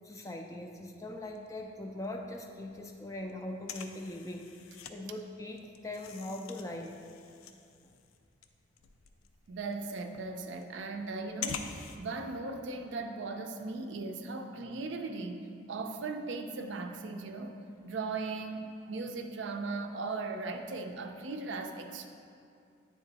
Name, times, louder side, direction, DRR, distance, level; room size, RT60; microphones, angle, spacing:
voice 1, 0.0-4.5 4.9-6.9, left 1 dB, 15° left, 3 dB, 0.3 m, -41 dB
sound 1, 1.2-2.1 2.3-2.4 2.7-5.0 5.3-12.0, left 7 dB, 90° left, 0.4 m, -45 dB
voice 2, 9.5-17.6 17.8-22.1, right 3 dB, 60° right, 5 dB, 0.4 m, -38 dB
9.0 x 3.6 x 4.0 m, 2.5 s
head